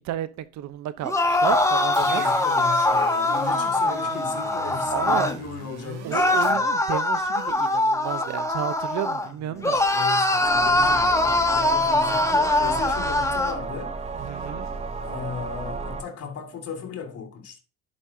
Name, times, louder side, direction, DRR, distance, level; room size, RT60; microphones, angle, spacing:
voice 1, 0.0-2.2 4.9-5.3 6.0-9.8 14.2-14.7, right 12 dB, 60° right, 0.8 m, -32 dB
sound 1, 1.0-5.4 6.1-9.3 9.6-13.6, left 2 dB, 10° left, 1.3 m, -22 dB
sound 2, 1.2-6.5, right 7 dB, 80° right, 2.3 m, -40 dB
voice 2, 2.0-6.6 9.4-14.4 15.0-17.6, left 6 dB, 50° left, 2.2 m, -36 dB
sound 3, 10.4-16.0, right 5 dB, 20° right, 0.9 m, -34 dB
11.0 x 5.4 x 2.7 m
supercardioid pair, 70°, 31 cm